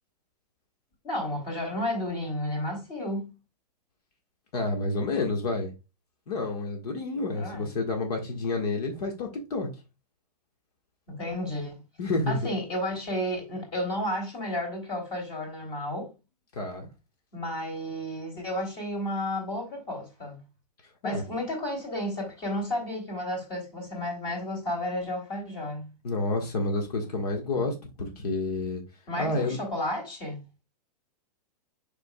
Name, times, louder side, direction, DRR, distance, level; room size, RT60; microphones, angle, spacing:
voice 1, 1.0-3.3 7.3-7.7 11.1-11.8 12.3-16.1 17.3-20.4 21.0-25.9 29.1-30.4, left 1 dB, 25° left, 3.0 m, -32 dB
voice 2, 4.5-5.7 6.3-9.7 12.0-12.4 16.5-16.9 21.0-21.2 26.0-28.8 29.2-29.6, left 2 dB, 70° left, 1.7 m, -29 dB
6.8 x 6.0 x 2.3 m
supercardioid pair, 160°, 21 cm